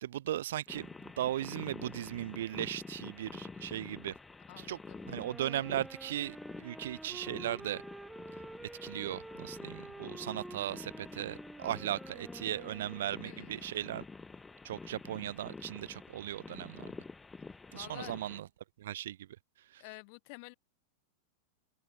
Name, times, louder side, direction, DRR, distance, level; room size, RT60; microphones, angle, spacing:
voice 1, 0.0-4.1 4.6-4.8 5.1-7.8 8.8-14.0 14.6-16.9 17.7-18.5 18.8-19.3 19.7-19.9, right 12 dB, 75° right, 0.6 m, -37 dB
sound 1, 0.7-18.4, left 4 dB, 15° left, 4.6 m, -48 dB
voice 2, 4.5-5.1 13.2-13.7 17.7-18.1 19.8-20.5, left 33 dB, 55° left, 2.7 m, -50 dB
Wind instrument woodwind instrument, 5.0-13.4, right 2 dB, 5° right, 1.7 m, -49 dB
hypercardioid pair, 115°, 0 cm